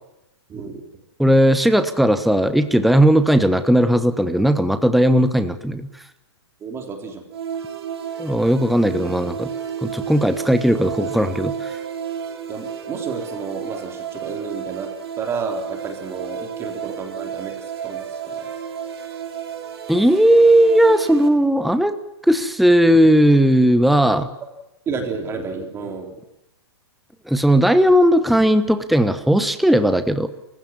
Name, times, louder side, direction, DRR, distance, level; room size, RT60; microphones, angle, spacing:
voice 1, 0.5-0.8 6.6-7.2 12.5-14.9 15.2-18.5 24.9-26.2, right 4 dB, 20° right, 4 dB, 3.6 m, -31 dB
voice 2, 1.2-5.9 8.2-9.5 9.8-11.7 19.9-22.0 22.2-24.3 27.3-30.3, equal, ahead, 9 dB, 1.1 m, -16 dB
sound 1, 7.3-21.3, right 8 dB, 65° right, 6.9 m, -32 dB
29.0 x 16.0 x 7.3 m, 0.91 s
hypercardioid pair, 145°, 14 cm